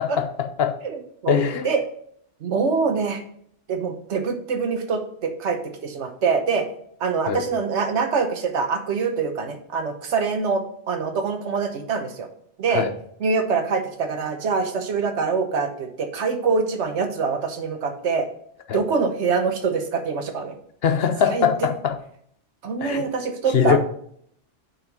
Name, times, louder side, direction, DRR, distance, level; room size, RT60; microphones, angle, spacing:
voice 1, 0.0-0.8 1.3-1.7 7.3-7.5 12.7-12.9 18.7-18.8 20.8-22.0 22.8-23.1 23.5-23.8, left 7 dB, 60° left, 7 dB, 0.9 m, -22 dB
voice 2, 0.8-1.4 1.6-1.8 2.4-3.2 3.7-6.7 7.0-12.3 12.6-12.8 13.2-18.3 18.7-20.5 21.3-21.5 22.6-23.8, right 5 dB, 75° right, 7 dB, 1.2 m, -24 dB
5.7 x 5.7 x 5.1 m, 0.66 s
omnidirectional pair, 1.2 m